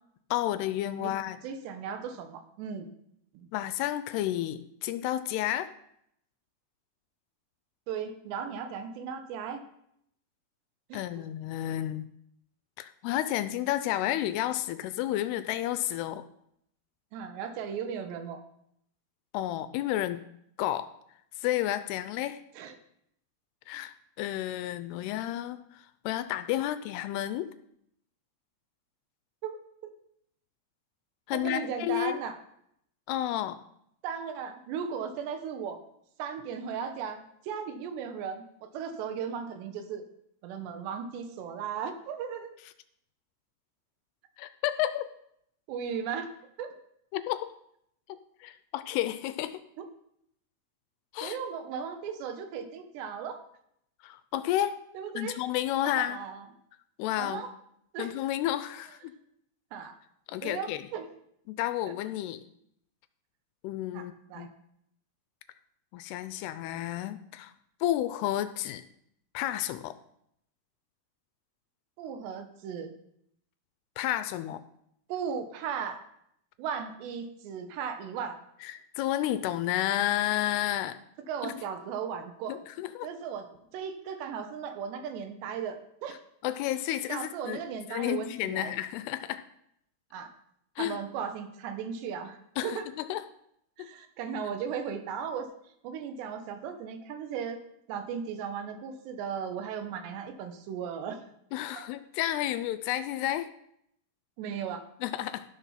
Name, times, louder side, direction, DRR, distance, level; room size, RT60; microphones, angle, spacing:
voice 1, 0.3-1.4 3.5-5.7 10.9-12.1 12.8-16.2 19.3-20.2 20.6-20.9 21.4-22.4 23.7-27.5 31.3-32.2 33.1-33.6 44.4-45.1 47.1-47.5 48.4-49.6 51.1-51.4 54.0-54.8 55.2-56.2 57.0-57.5 58.0-59.1 60.3-60.9 61.5-62.4 63.6-64.5 65.9-67.5 67.8-68.8 69.3-69.9 74.0-74.6 78.6-81.0 81.4-81.5 82.5-83.1 86.4-87.6 87.9-89.4 90.8-91.0 92.6-92.8 93.1-93.2 93.8-93.9 101.5-103.5 105.0-105.4, left 13 dB, 80° left, 12 dB, 2.5 m, -31 dB
voice 2, 1.4-2.9 3.3-3.5 7.9-9.6 10.9-11.0 17.1-18.4 22.6-22.8 29.4-29.6 29.8-29.9 31.3-32.4 34.0-35.8 36.2-40.0 40.4-42.5 45.7-46.3 46.6-46.7 49.8-49.9 51.2-53.4 54.9-55.4 55.8-56.5 57.2-57.5 57.9-58.1 59.7-60.0 60.4-61.1 63.9-64.5 72.0-72.9 75.1-76.0 76.6-78.4 81.3-82.6 83.0-83.5 83.7-86.2 87.1-88.8 90.1-90.3 90.8-92.4 92.6-92.9 93.8-95.5 95.8-97.6 97.9-101.2 101.7-101.9 104.4-104.9, right 7 dB, 80° right, 7 dB, 3.3 m, -36 dB
13.0 x 7.3 x 5.7 m, 0.74 s
omnidirectional pair, 4.9 m